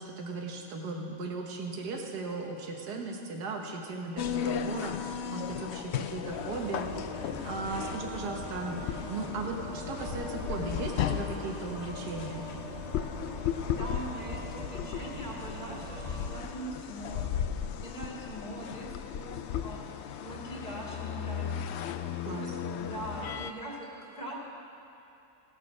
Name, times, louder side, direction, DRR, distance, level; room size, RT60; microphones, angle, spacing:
voice 1, 0.0-6.9 7.2-12.5 22.3-22.6, right 3 dB, 80° right, 1 dB, 1.7 m, -37 dB
sound 1, 4.2-23.5, left 9 dB, 85° left, 0.6 m, -36 dB
sound 2, 6.2-16.4, right 1 dB, 25° right, 1.3 m, -42 dB
voice 2, 13.7-17.5 17.8-21.9 22.8-24.3, right 1 dB, 25° left, -7 dB, 2.2 m, -42 dB
16.0 x 7.5 x 6.1 m, 2.9 s
omnidirectional pair, 1.7 m